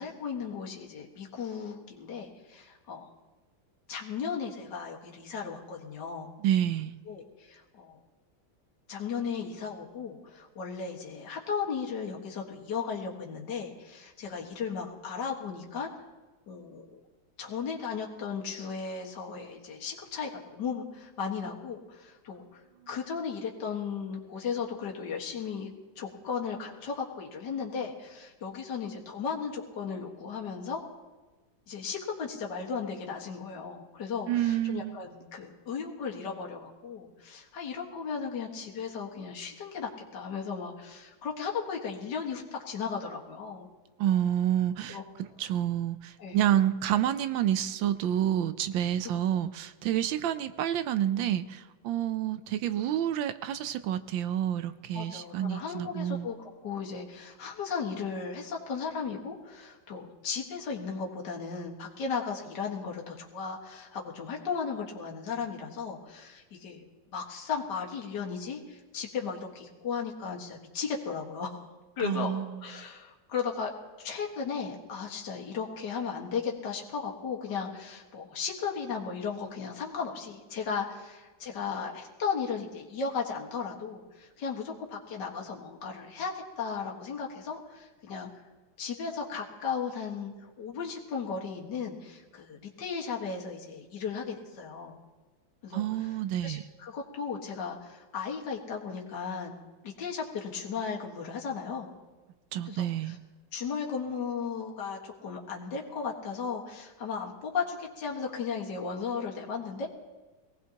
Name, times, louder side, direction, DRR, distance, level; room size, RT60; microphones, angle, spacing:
voice 1, 0.0-3.1 3.9-6.3 7.1-8.0 8.9-15.9 16.5-17.0 17.4-30.8 31.7-43.7 44.9-45.0 46.2-46.4 54.9-56.4 56.6-71.6 72.0-72.3 72.6-73.7 74.0-88.3 88.8-95.0 95.6-96.1 96.4-99.6 99.8-101.9 102.7-103.2 103.5-109.9, left 6 dB, 60° left, -1 dB, 2.2 m, -36 dB
voice 2, 6.4-7.0 34.3-35.0 44.0-56.3 72.0-72.5 95.7-96.6 102.5-103.2, right 11 dB, 75° right, 12 dB, 1.3 m, -29 dB
23.0 x 18.0 x 2.9 m, 1.2 s
omnidirectional pair, 2.2 m